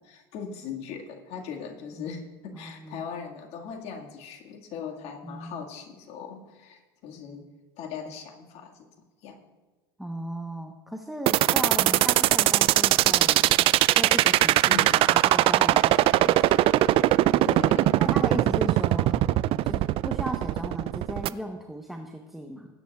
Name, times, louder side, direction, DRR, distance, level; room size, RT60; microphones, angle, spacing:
voice 1, 0.0-7.4 7.8-8.9 9.2-9.4 14.7-15.1 17.4-18.0, left 6 dB, 55° left, 1 dB, 1.9 m, -39 dB
voice 2, 2.5-3.1 5.2-5.7 10.0-16.6 18.0-19.2 19.6-22.7, right 1 dB, ahead, 3 dB, 1.0 m, -36 dB
sound 1, 11.3-21.3, right 15 dB, 45° right, 0.4 m, -20 dB
20.0 x 9.4 x 2.4 m, 1.2 s
hypercardioid pair, 80°, 13 cm